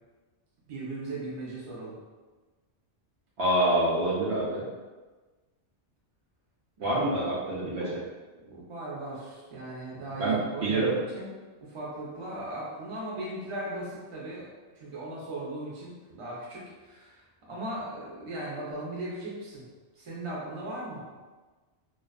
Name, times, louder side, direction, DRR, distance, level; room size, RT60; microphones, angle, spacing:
voice 1, 0.7-2.0 6.8-7.0 8.4-11.3 11.6-14.5 14.7-19.7 19.9-21.0, right 1 dB, 35° right, -6 dB, 0.6 m, -38 dB
voice 2, 3.4-4.6 6.8-8.0 10.2-10.9, right 1 dB, 70° right, -8 dB, 0.8 m, -26 dB
2.3 x 2.3 x 2.3 m, 1.3 s
omnidirectional pair, 1.2 m